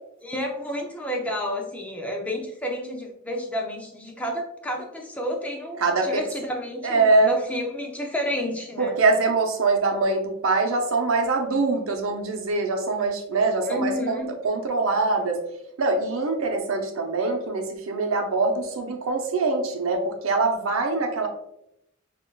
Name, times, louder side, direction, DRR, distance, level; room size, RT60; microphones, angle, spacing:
voice 1, 0.2-9.0 13.7-14.3, equal, 5° left, 1 dB, 0.4 m, -30 dB
voice 2, 5.8-6.2 6.8-7.3 8.8-15.4 15.8-21.3, right 3 dB, 90° right, 3 dB, 0.7 m, -23 dB
5.8 x 2.4 x 2.3 m, 0.80 s
head